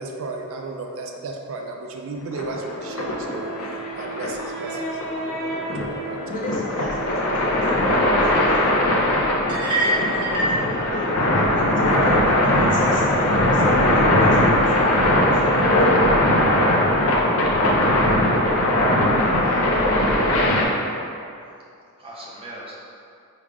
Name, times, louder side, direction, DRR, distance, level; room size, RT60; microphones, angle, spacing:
voice 1, 0.0-3.5 4.0-4.9 5.3-6.2 11.9-12.0, right 3 dB, 60° right, 2 dB, 0.4 m, -34 dB
sound 1, 2.3-20.7, left 1 dB, 70° left, 0.7 m, -20 dB
Wind instrument woodwind instrument, 2.8-7.6, right 2 dB, 40° right, 1.2 m, -34 dB
voice 2, 6.3-9.0 9.8-15.7, left 1 dB, 35° left, -4 dB, 0.7 m, -36 dB
sound 2, 9.5-10.6, right 1 dB, 80° right, 1.0 m, -23 dB
voice 3, 19.2-20.8 22.0-22.8, right 1 dB, 25° right, -5 dB, 0.7 m, -41 dB
5.2 x 2.4 x 3.3 m, 2.5 s
head